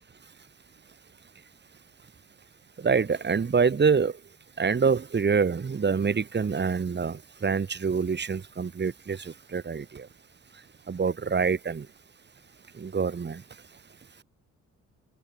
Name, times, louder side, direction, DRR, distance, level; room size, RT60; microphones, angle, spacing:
voice 1, 2.8-4.1 4.6-10.1 10.9-11.9 12.8-13.4, right 5 dB, 35° right, 3.6 m, -26 dB
cardioid pair, 90°, 30 cm